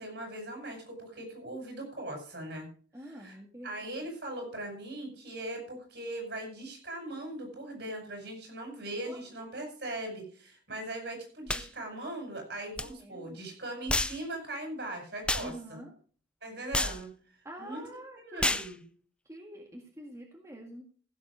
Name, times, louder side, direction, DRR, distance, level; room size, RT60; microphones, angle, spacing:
voice 1, 0.0-2.7 3.0-3.4 3.6-15.8 16.4-17.1 17.6-17.8 18.2-18.8, right 1 dB, 65° right, 3 dB, 6.1 m, -40 dB
voice 2, 2.9-3.7 9.1-9.5 12.8-13.4 15.4-15.9 17.4-18.6 19.3-20.8, equal, 15° right, 1 dB, 1.9 m, -46 dB
sound 1, 11.5-11.7 12.8-12.9 13.9-14.2 15.3-15.5 16.7-17.0 18.4-18.7, left 2 dB, 5° left, 0.5 m, -29 dB
15.5 x 7.7 x 4.9 m, 0.43 s
head